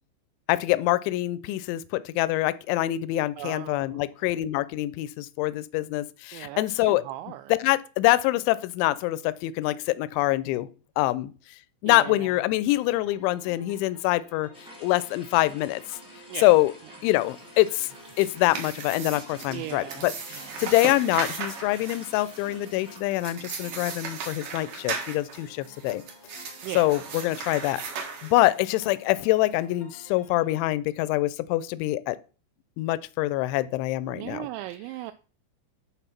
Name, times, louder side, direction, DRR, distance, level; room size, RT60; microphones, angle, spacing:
voice 1, 0.5-7.0 7.5-10.7 11.0-11.3 11.8-14.5 14.8-16.0 16.4-16.7 17.0-17.9 18.2-26.0 26.3-26.5 26.8-32.2 32.8-34.5, left 17 dB, 85° left, 2.7 m, -25 dB
voice 2, 3.4-3.9 6.3-7.5 11.8-12.3 16.3-16.5 19.5-20.5 26.6-26.9 34.1-35.1, right 15 dB, 85° right, 2.6 m, -38 dB
sound 1, 12.7-30.6, left 2 dB, 35° left, 0.6 m, -52 dB
sound 2, 14.5-23.0, equal, 5° right, 1.0 m, -50 dB
scroll papper, 17.9-28.8, right 6 dB, 60° right, 2.3 m, -37 dB
11.0 x 3.8 x 5.7 m
omnidirectional pair, 5.6 m